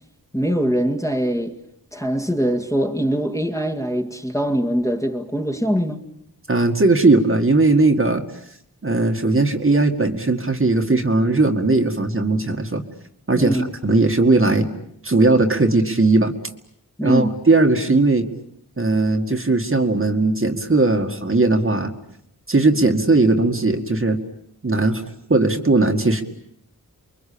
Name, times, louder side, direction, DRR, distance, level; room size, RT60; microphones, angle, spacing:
voice 1, 0.3-1.6 1.9-6.0 13.3-13.7 17.0-17.4, equal, 10° left, 2.2 m, -22 dB
voice 2, 6.5-8.2 8.8-12.8 13.3-13.6 13.8-14.7 15.0-16.3 17.0-18.3 18.8-21.9 22.5-24.2 24.6-25.0 25.3-26.2, right 2 dB, 35° right, 2.1 m, -18 dB
29.0 x 23.0 x 8.7 m
wide cardioid pair, 100°, 35 cm